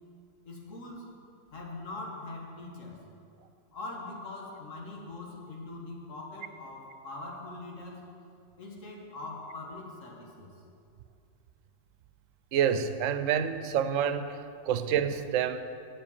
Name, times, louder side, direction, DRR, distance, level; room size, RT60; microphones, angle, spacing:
voice 1, 0.4-1.0 1.5-3.0 3.7-8.0 8.6-10.5, left 2 dB, 85° left, -1 dB, 1.8 m, -42 dB
voice 2, 12.5-14.4 14.7-15.6, right 8 dB, 85° right, 11 dB, 1.0 m, -27 dB
7.4 x 7.4 x 7.1 m, 2.5 s
omnidirectional pair, 1.3 m